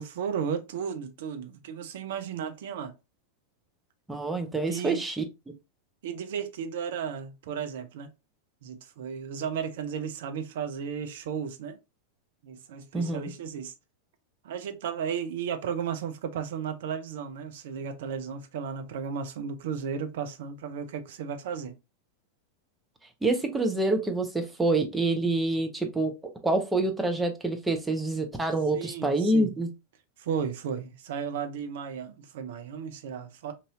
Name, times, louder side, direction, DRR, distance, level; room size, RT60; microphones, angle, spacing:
voice 1, 0.0-2.9 4.6-5.0 6.0-8.1 8.6-11.8 12.4-13.7 14.4-21.7 28.7-29.5 30.2-33.5, right 7 dB, 55° right, 0.5 m, -34 dB
voice 2, 4.1-5.2 12.9-13.3 23.2-26.1 26.4-29.7, right 2 dB, 5° right, 0.6 m, -26 dB
3.0 x 2.7 x 2.4 m
figure-of-eight pair, 90°, 0 cm